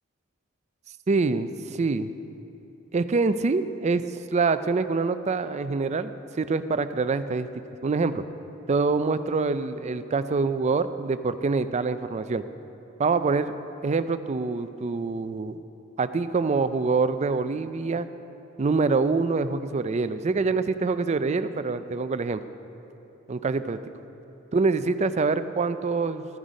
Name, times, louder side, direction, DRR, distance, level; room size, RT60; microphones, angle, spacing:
voice 1, 1.1-2.1 2.9-4.0 4.3-7.5 7.8-8.2 8.7-12.4 13.0-13.5 13.8-15.6 16.0-18.1 18.6-22.4 23.3-23.8 24.5-26.3, right 4 dB, 35° right, 11 dB, 0.4 m, -25 dB
13.5 x 10.0 x 5.3 m, 3.0 s
head